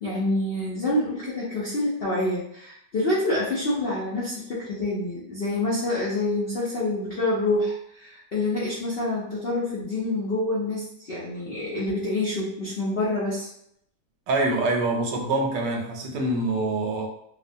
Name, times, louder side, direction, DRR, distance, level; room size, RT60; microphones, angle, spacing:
voice 1, 0.0-13.5, left 2 dB, 85° left, -6 dB, 0.5 m, -27 dB
voice 2, 14.3-17.1, right 2 dB, 85° right, 1 dB, 1.3 m, -25 dB
2.8 x 2.1 x 2.6 m, 0.72 s
omnidirectional pair, 1.8 m